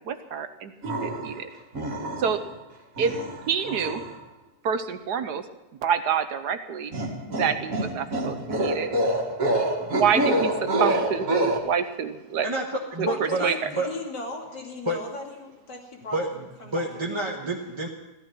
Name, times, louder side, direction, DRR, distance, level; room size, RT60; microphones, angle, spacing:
voice 1, 0.0-1.5 2.2-2.4 3.0-3.1 3.5-4.0 4.6-5.4 5.8-6.9 7.3-8.9 9.8-12.5 13.0-13.7, right 7 dB, 70° right, 9 dB, 1.4 m, -27 dB
sound 1, 0.8-1.4 1.7-2.5 3.0-4.1 6.9-11.6, right 1 dB, 50° right, 2.3 m, -27 dB
voice 2, 12.4-14.0 14.8-15.0 16.1-17.9, right 1 dB, 20° right, -2 dB, 1.2 m, -29 dB
voice 3, 13.1-17.2, left 2 dB, 65° left, 0 dB, 3.2 m, -38 dB
16.0 x 12.5 x 5.9 m, 1.1 s
omnidirectional pair, 1.9 m